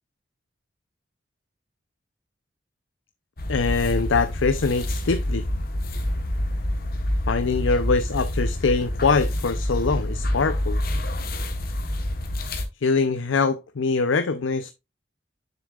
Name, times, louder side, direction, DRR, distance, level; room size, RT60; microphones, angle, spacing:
sound 1, 3.4-12.7, left 1 dB, 50° left, 1.2 m, -27 dB
voice 1, 3.5-5.4 7.3-10.8 12.8-14.7, left 4 dB, 85° left, 0.6 m, -23 dB
7.0 x 6.4 x 2.4 m
head